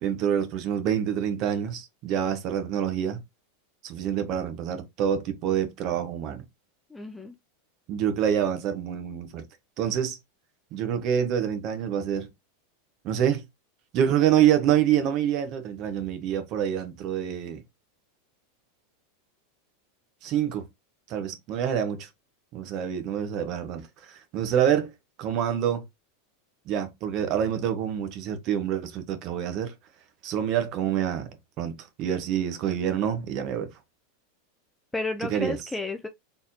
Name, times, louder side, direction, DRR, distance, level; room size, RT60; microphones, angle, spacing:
voice 1, 0.0-3.2 3.8-6.4 7.9-9.4 9.8-10.2 10.7-12.3 13.0-13.4 13.9-17.6 20.2-20.7 21.1-22.1 22.5-24.9 25.2-25.8 26.7-29.7 30.2-31.3 31.6-33.7 35.2-35.6, right 9 dB, 40° right, 1.1 m, -26 dB
voice 2, 6.9-7.4 34.9-36.1, left 3 dB, 5° left, 0.5 m, -32 dB
4.3 x 3.6 x 2.8 m
supercardioid pair, 150°, 0 cm